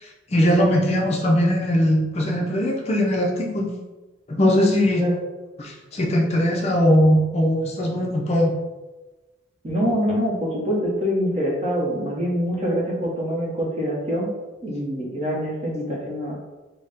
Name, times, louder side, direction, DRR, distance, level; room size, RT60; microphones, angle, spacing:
voice 1, 0.0-3.7 4.3-5.1 5.6-8.5, equal, 30° left, -1 dB, 0.5 m, -20 dB
voice 2, 9.6-14.3 14.6-16.4, equal, 30° right, -3 dB, 0.8 m, -25 dB
4.0 x 2.1 x 3.4 m, 1.2 s
head